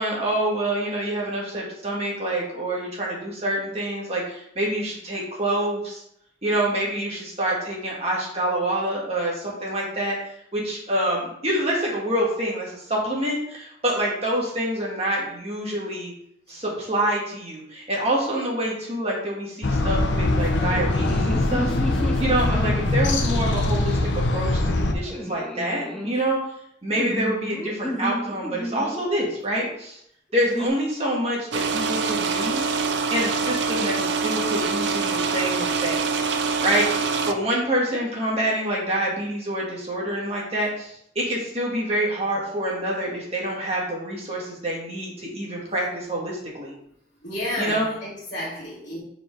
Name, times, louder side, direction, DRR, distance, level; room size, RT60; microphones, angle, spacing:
voice 1, 0.0-6.0 6.4-10.2 10.5-16.1 16.5-21.7 22.2-26.4 26.8-30.0 30.3-32.6 33.1-36.2 36.6-46.7 47.6-47.9, right 1 dB, 30° right, -3 dB, 1.8 m, -26 dB
sound 1, 19.6-24.9, left 2 dB, 65° left, 0.8 m, -22 dB
sound 2, 20.6-23.6 25.1-26.1 26.9-29.0 30.4-30.7, equal, 5° left, 0.6 m, -32 dB
sound 3, 31.5-37.3, right 4 dB, 60° right, 0.5 m, -25 dB
voice 2, 47.2-49.0, left 1 dB, 40° left, -11 dB, 1.8 m, -31 dB
5.2 x 4.7 x 4.6 m, 0.73 s
head